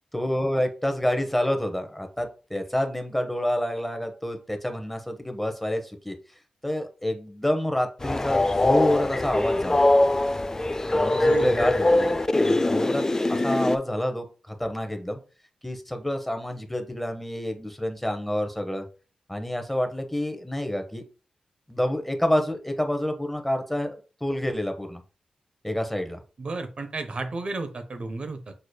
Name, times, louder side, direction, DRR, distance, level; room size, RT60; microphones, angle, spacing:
voice 1, 0.1-6.1 6.6-9.8 10.9-15.2 15.6-18.8 19.3-21.0 21.7-25.0 25.6-26.2, left 1 dB, 5° left, 6 dB, 0.8 m, -28 dB
Train, 8.0-13.8, left 2 dB, 25° left, 0.3 m, -22 dB
voice 2, 11.2-11.6 26.4-28.5, right 3 dB, 55° right, 7 dB, 0.7 m, -32 dB
6.6 x 3.1 x 2.2 m, 0.35 s
cardioid pair, 65°, 2 cm